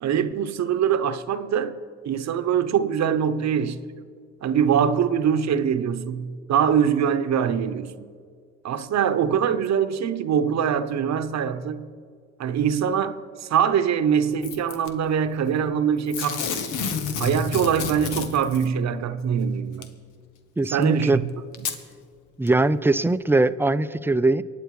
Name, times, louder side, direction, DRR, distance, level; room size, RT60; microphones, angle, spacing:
voice 1, 0.0-3.8 4.4-8.1 8.6-11.9 12.4-16.7 17.2-19.9 20.7-21.3 21.6-21.7, right 8 dB, 60° right, 0.8 m, -23 dB
Packing tape duct tape / Tearing, 14.4-14.9 16.1-18.7 19.8-19.9 20.8-20.9 21.5-21.8 22.5-22.6, left 6 dB, 90° left, 1.2 m, -30 dB
voice 2, 20.6-21.2 22.4-24.4, right 2 dB, 10° right, 0.4 m, -21 dB
23.5 x 9.1 x 4.8 m
cardioid pair, 90°, 30 cm